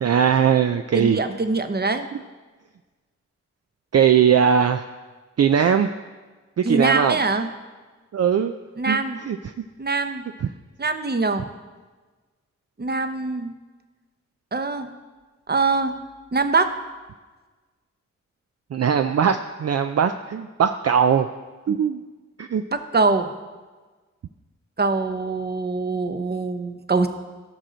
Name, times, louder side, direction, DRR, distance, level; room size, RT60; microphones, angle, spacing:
voice 1, 0.0-1.2 2.1-2.2 3.9-4.8 5.4-5.9 6.6-7.2 8.1-8.5 8.9-9.0 9.3-9.4 10.4-10.5 18.7-21.3 21.7-22.0 22.4-22.6, right 8 dB, 55° right, 7 dB, 0.4 m, -19 dB
voice 2, 0.9-2.1 6.6-7.5 8.8-9.2 9.8-10.2 10.8-11.5 12.8-13.5 14.5-14.9 15.5-16.0 16.3-16.7 22.7-23.3 24.8-27.1, right 3 dB, 35° right, 9 dB, 0.8 m, -23 dB
14.0 x 6.3 x 3.9 m, 1.3 s
cardioid pair, 55°, 29 cm